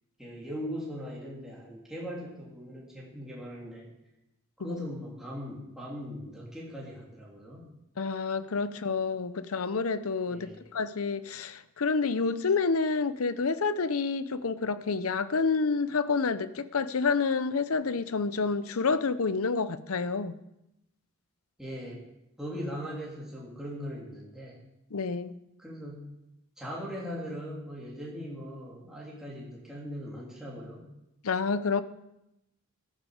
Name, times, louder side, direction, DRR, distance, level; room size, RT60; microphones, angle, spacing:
voice 1, 0.2-3.9 4.6-7.7 10.3-10.6 21.6-22.0 22.4-24.6 25.6-26.1 26.6-30.9, equal, ahead, -5 dB, 3.0 m, -40 dB
voice 2, 8.0-20.3 24.9-25.3 31.2-31.8, left 4 dB, 75° left, 14 dB, 0.7 m, -29 dB
14.0 x 11.5 x 4.9 m, 0.87 s
head